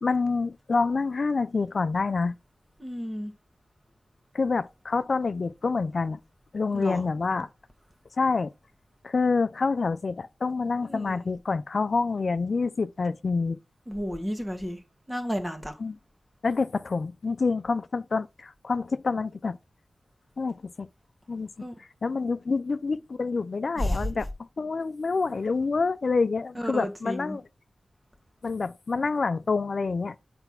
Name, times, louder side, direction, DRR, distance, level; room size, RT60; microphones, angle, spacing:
voice 1, 0.0-2.4 4.3-6.2 6.5-7.5 8.2-8.5 9.0-13.6 15.8-15.9 16.4-19.6 20.4-20.9 21.3-21.5 22.0-24.3 24.6-27.4 28.4-30.1, left 4 dB, 60° left, 0.5 m, -27 dB
voice 2, 2.8-3.3 6.7-7.0 10.8-11.2 13.9-14.8 15.1-15.8 21.6-21.7 23.7-24.1 26.5-27.4, equal, 10° right, 1.5 m, -32 dB
8.0 x 3.4 x 5.7 m
wide cardioid pair, 70°, 0 cm